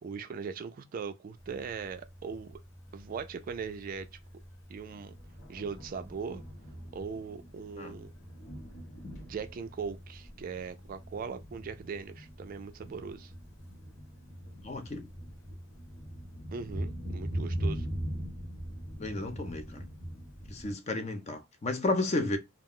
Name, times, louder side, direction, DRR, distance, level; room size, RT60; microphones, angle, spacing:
voice 1, 0.0-2.6 2.9-4.1 4.7-5.1 5.5-6.4 6.9-8.1 9.2-13.3 16.5-17.9, right 5 dB, 45° right, 0.3 m, -39 dB
Thunder, 1.4-20.7, equal, 70° left, 1.0 m, -42 dB
voice 2, 14.6-15.0 19.0-19.9 20.5-22.4, left 2 dB, 35° left, 0.5 m, -32 dB
2.3 x 2.2 x 3.4 m
head